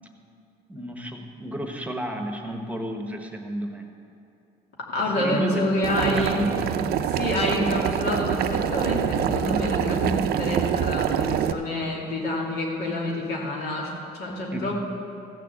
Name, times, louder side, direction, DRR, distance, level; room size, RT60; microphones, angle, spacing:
voice 1, 0.7-3.8 5.1-5.6 6.0-6.9 14.5-14.7, equal, 10° right, 4 dB, 1.1 m, -33 dB
voice 2, 4.9-6.5 7.0-14.7, left 1 dB, 75° left, -2 dB, 2.8 m, -27 dB
Boiling, 5.8-11.5, right 9 dB, 65° right, 0.6 m, -25 dB
14.5 x 6.7 x 7.7 m, 2.6 s
cardioid pair, 110°, 17 cm